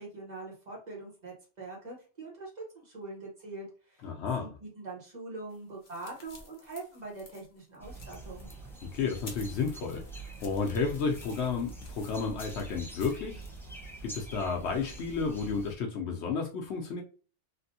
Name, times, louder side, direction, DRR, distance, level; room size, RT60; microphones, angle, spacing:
voice 1, 0.0-4.1 4.4-8.5, right 3 dB, 40° right, 1.4 m, -43 dB
voice 2, 4.0-4.6 8.9-10.0 10.4-13.4 14.0-17.0, left 5 dB, 75° left, 0.9 m, -32 dB
sound 1, 5.5-13.6, left 3 dB, 45° left, 0.9 m, -53 dB
sound 2, 7.8-15.7, right 2 dB, ahead, 0.7 m, -45 dB
3.3 x 2.5 x 2.6 m
omnidirectional pair, 1.2 m